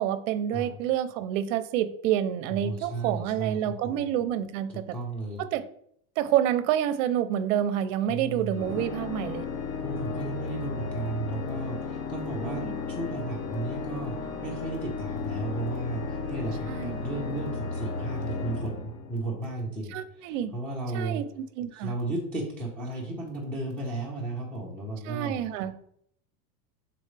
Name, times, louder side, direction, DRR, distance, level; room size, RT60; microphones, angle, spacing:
voice 1, 0.0-4.9 5.4-5.6 6.2-9.5 12.4-12.7 16.7-17.0 19.9-20.5 20.9-21.9 25.0-25.7, right 10 dB, 55° right, 11 dB, 0.7 m, -28 dB
voice 2, 2.5-4.1 4.9-5.4 8.1-8.7 9.8-21.2 21.7-25.4, right 2 dB, 5° left, -6 dB, 0.9 m, -34 dB
Organ, 8.5-19.5, left 4 dB, 70° left, 1.0 m, -34 dB
7.6 x 4.0 x 3.3 m, 0.67 s
supercardioid pair, 160°, 46 cm